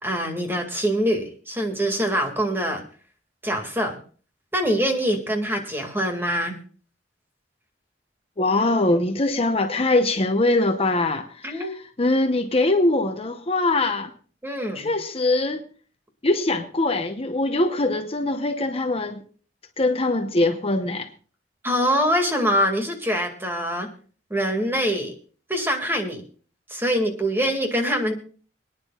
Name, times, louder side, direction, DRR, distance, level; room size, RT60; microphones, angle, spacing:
voice 1, 0.0-2.8 3.4-4.0 4.5-6.6 11.4-11.7 14.4-14.9 21.6-23.9 24.3-25.1 25.5-26.2 26.7-28.1, equal, 15° right, 2.1 m, -24 dB
voice 2, 8.4-11.7 12.0-14.1 14.7-15.6 16.2-19.2 19.8-21.1, left 2 dB, 35° left, 0.8 m, -22 dB
26.0 x 10.0 x 2.4 m
head